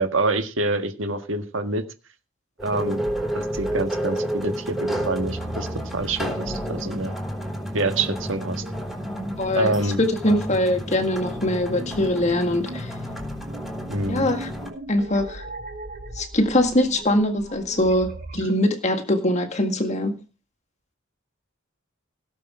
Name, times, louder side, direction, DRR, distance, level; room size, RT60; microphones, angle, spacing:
voice 1, 0.0-1.8 2.6-3.0 3.3-5.7 5.9-7.1 7.7-8.6 9.5-10.0 10.3-10.4 13.9-14.3, right 2 dB, 70° right, 1.7 m, -26 dB
sound 1, 2.6-14.7, equal, ahead, 4.2 m, -31 dB
sound 2, 4.8-18.5, equal, 45° right, 2.5 m, -37 dB
voice 2, 9.4-9.7 10.2-12.9 14.1-14.5 14.9-15.4 16.2-20.2, left 1 dB, 35° left, 1.8 m, -22 dB
17.0 x 7.0 x 4.9 m
head